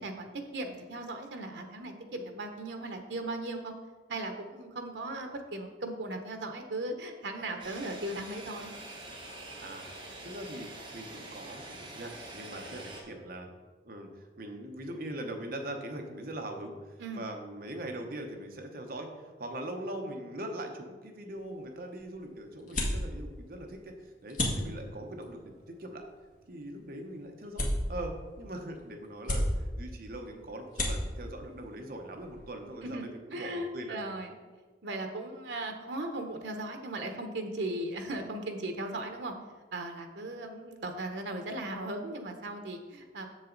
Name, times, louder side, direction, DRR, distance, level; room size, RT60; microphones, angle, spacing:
voice 1, 0.0-3.7 4.1-8.7 17.0-17.2 32.8-33.0 33.3-34.3 34.8-39.3 39.7-43.3, right 2 dB, 85° right, 5 dB, 0.9 m, -37 dB
sound 1, 7.6-13.0, right 2 dB, 25° right, 1.3 m, -45 dB
voice 2, 10.2-10.7 10.9-13.5 13.8-26.0 26.5-34.0, right 1 dB, 55° right, 3 dB, 0.9 m, -41 dB
sound 2, 21.3-32.8, left 1 dB, 50° left, 1.6 m, -37 dB
7.4 x 7.0 x 3.9 m, 1.3 s
head